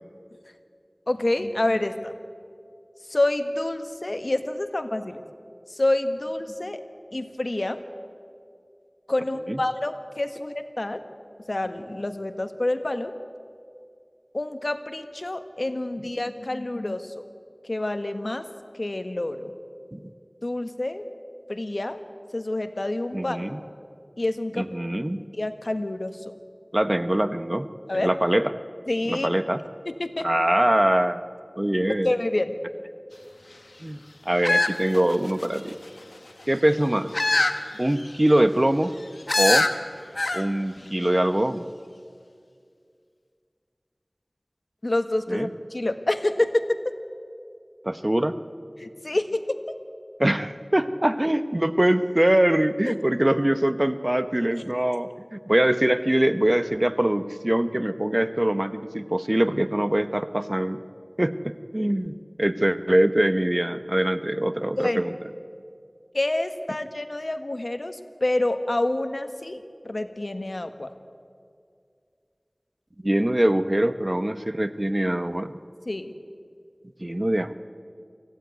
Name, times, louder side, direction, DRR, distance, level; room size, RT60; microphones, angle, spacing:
voice 1, 1.1-2.1 3.1-5.2 5.7-6.8 7.1-7.8 9.1-11.0 11.5-13.1 14.3-17.2 17.7-18.5 18.7-19.5 20.4-21.0 21.5-22.0 22.3-23.4 24.2-24.7 25.3-26.2 27.9-28.1 28.9-29.3 29.8-30.3 32.0-32.5 44.8-46.6 48.8-49.6 52.9-53.0 64.8-65.0 66.1-70.9 75.8-76.1, left 1 dB, 70° left, 9 dB, 1.4 m, -27 dB
voice 2, 23.1-23.6 24.5-25.2 26.7-27.7 27.9-28.4 29.1-29.6 30.2-31.2 31.6-32.1 33.8-34.0 34.3-35.7 36.5-37.1 37.8-38.9 39.4-39.7 40.3-41.6 45.3-45.5 47.8-48.4 50.2-60.8 61.2-65.1 73.0-75.6 77.0-77.5, right 1 dB, 30° right, 12 dB, 0.9 m, -23 dB
sound 1, 34.4-35.6 37.1-37.6 38.0-38.1 39.3-39.7 40.2-40.5 40.8-40.9, left 2 dB, 85° left, 1.1 m, -22 dB
24.5 x 16.0 x 9.3 m, 2.3 s
wide cardioid pair, 40°, 0 cm